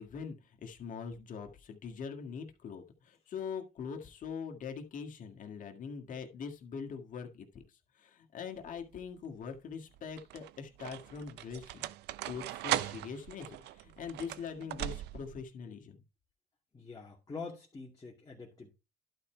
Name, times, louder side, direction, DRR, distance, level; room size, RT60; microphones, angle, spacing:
voice 1, 0.0-7.6 7.9-11.9 12.2-16.0, left 6 dB, 50° left, 1.8 m, -43 dB
sound 1, 8.6-9.1 9.9-15.4, right 15 dB, 80° right, 0.5 m, -39 dB
voice 2, 16.7-18.7, left 4 dB, 20° left, 2.3 m, -45 dB
11.5 x 4.5 x 4.4 m
cardioid pair, 110°, 17 cm